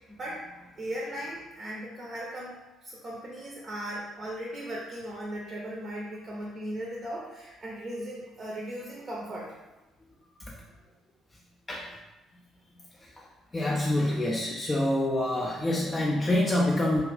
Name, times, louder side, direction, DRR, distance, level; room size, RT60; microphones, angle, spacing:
voice 1, 0.1-0.4 0.8-9.5, right 1 dB, 35° right, -4 dB, 0.6 m, -37 dB
voice 2, 13.5-17.0, left 1 dB, 25° left, -3 dB, 0.4 m, -26 dB
2.4 x 2.4 x 3.3 m, 1.1 s
figure-of-eight pair, 50°, 0 cm